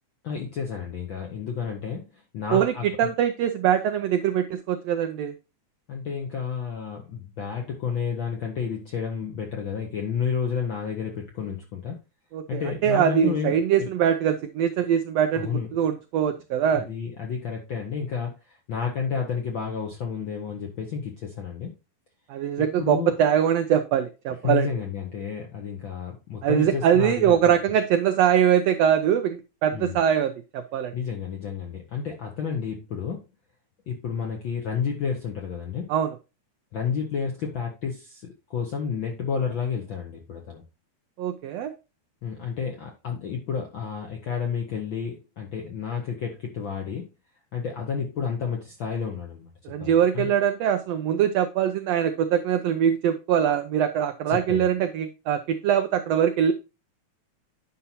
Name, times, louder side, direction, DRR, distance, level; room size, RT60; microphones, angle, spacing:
voice 1, 0.2-3.1 5.9-12.0 12.5-13.9 15.3-15.7 16.7-21.7 22.6-23.1 24.4-27.5 29.7-30.0 30.9-33.3 33.9-35.9 36.7-40.6 42.2-47.1 47.5-49.5 49.8-50.2 54.3-54.7, left 6 dB, 70° left, 1 dB, 1.1 m, -31 dB
voice 2, 2.5-5.3 12.3-16.9 22.3-24.7 26.4-30.9 35.9-36.1 41.2-41.7 49.6-56.5, right 9 dB, 85° right, 8 dB, 1.4 m, -23 dB
9.6 x 5.6 x 2.8 m, 0.29 s
omnidirectional pair, 3.5 m